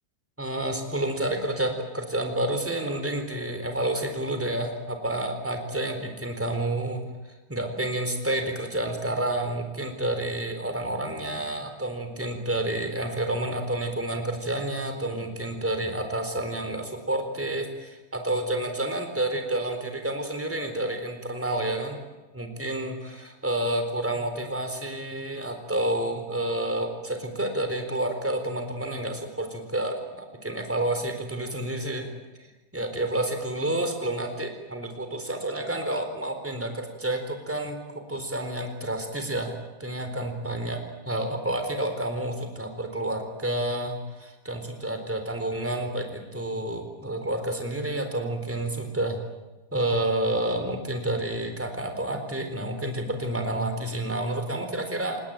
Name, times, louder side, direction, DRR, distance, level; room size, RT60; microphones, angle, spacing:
voice 1, 0.4-7.0 7.5-22.0 22.3-32.1 32.4-32.5 32.7-37.8 38.1-39.5 39.8-49.2 49.7-55.2, right 1 dB, 5° right, 6 dB, 3.1 m, -29 dB
29.5 x 19.0 x 8.9 m, 1.1 s
omnidirectional pair, 5.6 m